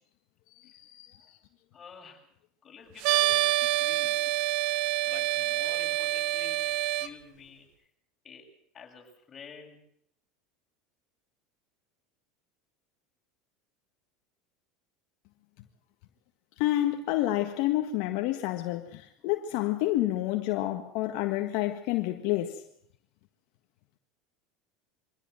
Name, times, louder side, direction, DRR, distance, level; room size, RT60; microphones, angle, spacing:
voice 1, 0.6-1.4 16.6-22.6, left 14 dB, 65° left, 1.7 m, -29 dB
voice 2, 1.7-2.3 2.6-4.4 5.0-7.9 8.2-9.8 19.2-19.3, left 6 dB, 30° left, 7.2 m, -50 dB
sound 1, 3.0-7.1, right 16 dB, 65° right, 1.3 m, -27 dB
24.5 x 17.0 x 7.8 m
supercardioid pair, 105°, 0 cm